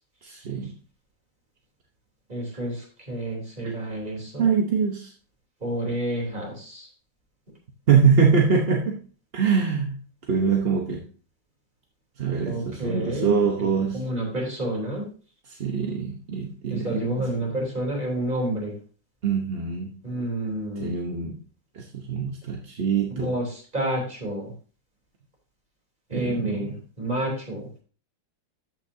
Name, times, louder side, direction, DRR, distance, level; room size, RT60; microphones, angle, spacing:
voice 1, 0.2-0.7 3.6-3.7 4.4-5.1 7.9-9.0 9.3-10.0 10.3-11.0 12.2-14.0 15.5-17.3 19.2-19.9 20.8-21.4 21.7-23.3 26.1-26.7, right 6 dB, 40° right, 1 dB, 1.0 m, -24 dB
voice 2, 2.3-4.6 5.6-6.9 12.5-13.7 13.9-15.1 16.7-18.8 20.0-20.9 23.1-24.5 26.1-27.7, right 1 dB, 25° right, -1 dB, 3.6 m, -29 dB
13.5 x 6.1 x 2.7 m, 0.39 s
omnidirectional pair, 2.0 m